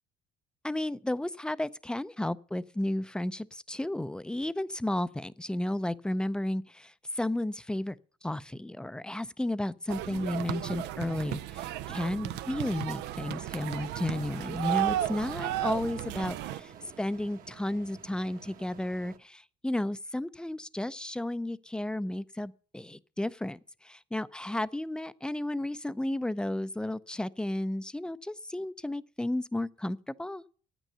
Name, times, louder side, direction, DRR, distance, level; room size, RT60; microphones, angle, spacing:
voice 1, 0.6-8.0 8.2-16.7 17.0-30.4, left 1 dB, 5° left, 0.5 m, -33 dB
sound 1, 9.9-16.6, right 14 dB, 85° right, 0.5 m, -34 dB
sound 2, 13.0-19.2, right 8 dB, 55° right, 1.3 m, -49 dB
10.0 x 9.1 x 6.8 m
cardioid pair, 110°, 17 cm